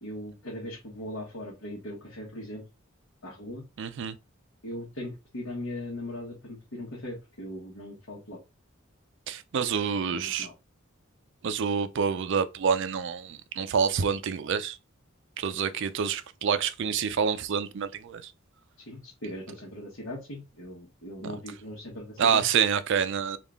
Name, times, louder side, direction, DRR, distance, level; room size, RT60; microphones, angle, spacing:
voice 1, 0.0-2.6 3.2-3.6 4.6-8.4 10.1-10.5 18.9-22.5, left 1 dB, 75° left, 1.2 m, -39 dB
voice 2, 3.8-4.2 9.3-10.5 11.4-14.8 15.4-18.3 22.2-23.4, right 6 dB, 60° right, 0.4 m, -27 dB
3.6 x 2.4 x 3.5 m
head